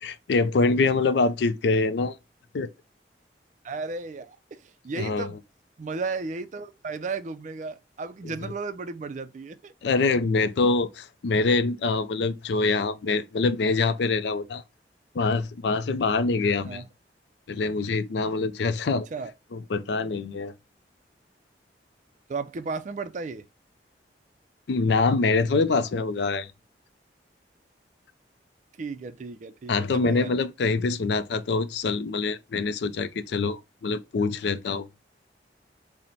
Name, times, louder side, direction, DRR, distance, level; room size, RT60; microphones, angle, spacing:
voice 1, 0.0-2.2 2.5-2.7 5.0-5.3 8.2-8.5 9.8-14.6 15.1-16.8 17.5-19.1 19.5-20.5 24.7-26.5 29.7-34.9, left 3 dB, 75° left, 0.4 m, -25 dB
voice 2, 3.6-5.4 5.8-9.7 16.7-16.8 19.1-19.3 22.3-23.4 28.8-30.3, right 4 dB, 45° right, 0.4 m, -34 dB
4.4 x 2.1 x 3.9 m
head